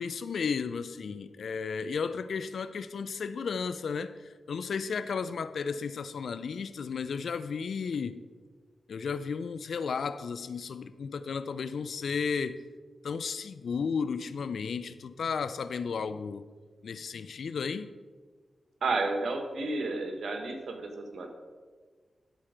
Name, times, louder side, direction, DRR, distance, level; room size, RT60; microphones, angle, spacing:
voice 1, 0.0-8.2 8.9-12.6 13.0-16.4 16.8-17.9, left 5 dB, 80° left, 0.4 m, -34 dB
voice 2, 18.8-21.3, right 3 dB, 75° right, 1.3 m, -31 dB
13.0 x 4.4 x 5.0 m
cardioid pair, 45°, 0 cm